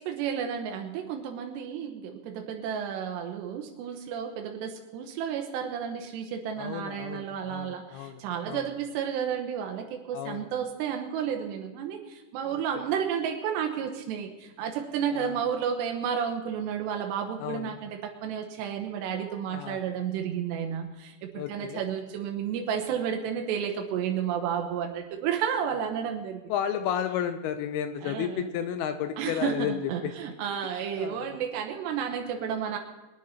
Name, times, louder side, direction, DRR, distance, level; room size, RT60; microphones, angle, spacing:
voice 1, 0.0-26.4 28.0-28.5 29.2-32.8, right 8 dB, 80° right, 3 dB, 3.1 m, -32 dB
voice 2, 6.6-8.7 10.1-10.5 12.5-12.6 15.1-15.4 17.4-17.7 19.5-19.8 21.4-21.8 26.5-29.8 30.0-30.1 31.0-31.4, left 9 dB, 75° left, 9 dB, 2.5 m, -32 dB
21.5 x 9.6 x 5.7 m, 1.1 s
omnidirectional pair, 5.0 m